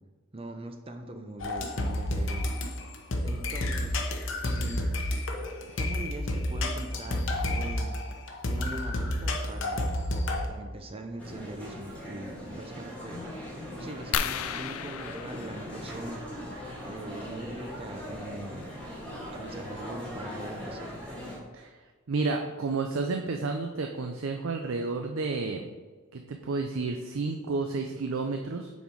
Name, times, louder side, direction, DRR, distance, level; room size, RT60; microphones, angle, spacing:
voice 1, 0.3-2.5 3.2-4.0 4.4-4.9 5.8-8.0 8.5-9.9 10.5-13.3 13.8-16.2 16.8-18.7 19.3-20.9, right 1 dB, 25° right, 6 dB, 0.6 m, -41 dB
sound 1, 1.4-10.5, left 1 dB, 65° left, 0.9 m, -30 dB
sound 2, 11.2-21.4, equal, 5° left, 1.9 m, -40 dB
sound 3, 14.1-16.5 18.1-18.3 18.9-19.0 19.2-19.5, left 8 dB, 85° left, 0.4 m, -34 dB
voice 2, 22.1-25.7 26.1-28.7, right 3 dB, 75° right, 4 dB, 0.5 m, -31 dB
6.8 x 4.3 x 4.7 m, 1.4 s
head